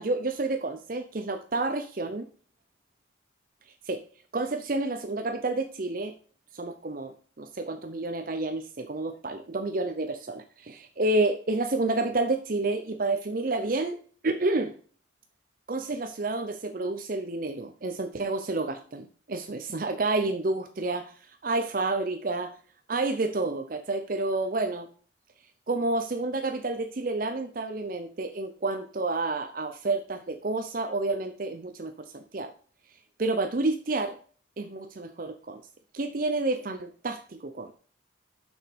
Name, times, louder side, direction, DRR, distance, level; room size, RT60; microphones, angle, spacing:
voice 1, 0.0-2.3 3.8-4.0 4.3-6.1 6.5-14.0 14.2-14.8 15.7-22.6 22.9-24.9 25.7-32.5 33.2-34.2 34.6-35.6 35.9-37.7, right 2 dB, 45° right, 7 dB, 0.6 m, -29 dB
7.0 x 6.1 x 5.1 m, 0.43 s
head